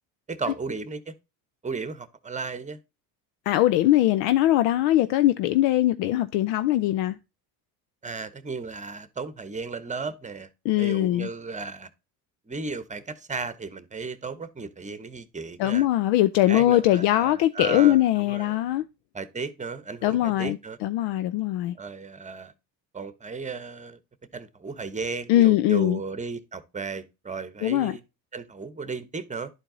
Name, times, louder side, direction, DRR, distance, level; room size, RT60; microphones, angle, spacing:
voice 1, 0.3-1.1 1.6-2.8 8.0-10.5 10.8-11.9 12.5-15.9 16.5-18.6 19.1-20.8 21.7-22.5 22.9-24.0 24.3-28.0 28.3-29.5, right 4 dB, 15° right, 1.0 m, -35 dB
voice 2, 3.5-7.2 10.6-11.3 15.6-18.8 20.0-21.7 25.3-26.0 27.6-28.0, left 14 dB, 75° left, 0.6 m, -21 dB
11.5 x 4.5 x 3.8 m
supercardioid pair, 80°, 44 cm